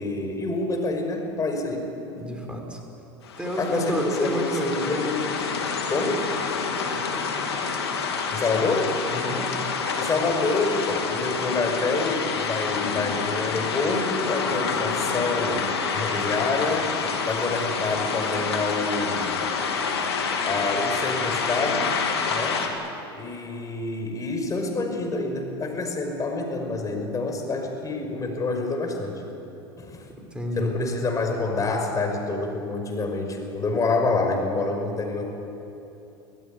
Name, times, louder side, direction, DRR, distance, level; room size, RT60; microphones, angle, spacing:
voice 1, 0.0-1.9 3.6-5.4 5.9-6.3 8.3-9.0 9.9-16.9 17.2-19.4 20.5-21.9 22.3-22.7 23.2-29.2 29.8-30.0 30.6-35.2, left 3 dB, 25° left, 3 dB, 5.5 m, -27 dB
voice 2, 2.1-2.8 3.4-5.1 6.6-7.3 9.1-9.5 17.3-17.5 30.2-30.7, right 1 dB, 10° right, 1 dB, 5.7 m, -31 dB
sound 1, 3.2-22.7, left 5 dB, 85° left, 3.0 m, -28 dB
25.5 x 16.5 x 9.9 m, 2.9 s
hypercardioid pair, 90°, 13 cm